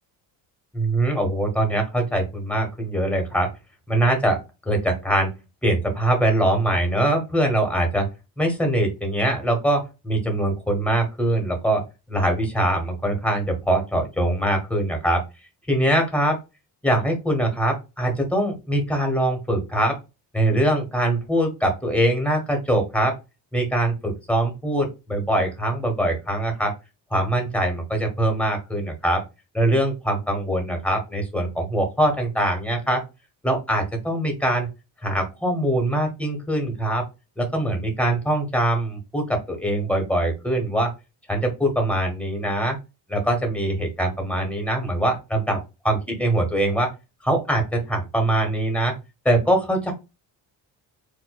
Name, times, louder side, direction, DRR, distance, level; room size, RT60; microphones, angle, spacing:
voice 1, 0.7-3.5 3.9-5.3 5.6-8.1 8.4-15.2 15.7-16.4 16.8-20.0 20.3-23.2 23.5-26.7 27.1-29.2 29.5-33.0 33.4-34.7 35.0-37.0 37.4-40.9 41.3-42.8 43.1-45.6 45.8-46.9 47.2-48.9 49.2-49.9, right 1 dB, 5° left, 3 dB, 1.3 m, -23 dB
4.6 x 2.6 x 2.3 m, 0.26 s
cardioid pair, 110°, 42 cm